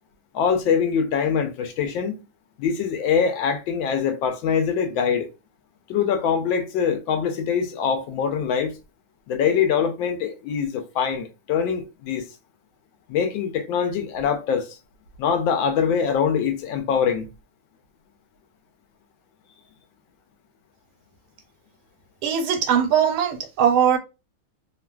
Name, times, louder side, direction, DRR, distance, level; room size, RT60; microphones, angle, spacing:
voice 1, 0.3-2.2 2.6-5.3 5.9-8.7 9.3-12.3 13.1-14.8 15.2-17.3, left 7 dB, 75° left, 1.2 m, -23 dB
voice 2, 22.2-24.0, right 8 dB, 90° right, 1.5 m, -20 dB
3.2 x 2.3 x 2.3 m
omnidirectional pair, 2.3 m